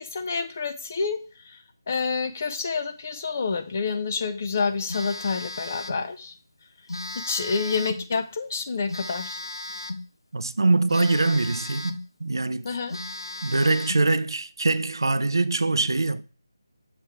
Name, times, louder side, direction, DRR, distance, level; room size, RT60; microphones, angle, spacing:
voice 1, 0.0-6.3 7.1-9.4 12.6-13.0, left 4 dB, 35° left, 0.6 m, -28 dB
Telephone, 4.9-6.1 6.9-8.1 8.9-10.1 10.9-12.1 12.5-12.6 12.9-14.1, left 2 dB, 80° left, 0.8 m, -35 dB
voice 2, 10.3-12.7 13.4-16.2, right 3 dB, 75° right, 0.5 m, -23 dB
6.7 x 3.3 x 4.6 m
figure-of-eight pair, 165°, 2 cm